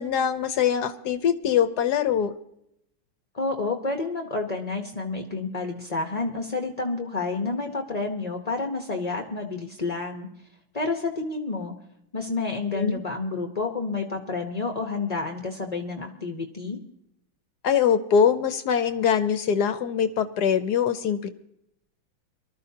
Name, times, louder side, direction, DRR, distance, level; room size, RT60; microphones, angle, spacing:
voice 1, 0.0-2.3 12.7-13.0 17.6-21.3, left 7 dB, 65° left, 11 dB, 1.1 m, -23 dB
voice 2, 3.3-10.3 10.7-11.7 12.1-16.8, left 3 dB, 35° left, 3 dB, 0.6 m, -29 dB
24.0 x 13.0 x 2.8 m, 0.78 s
omnidirectional pair, 2.2 m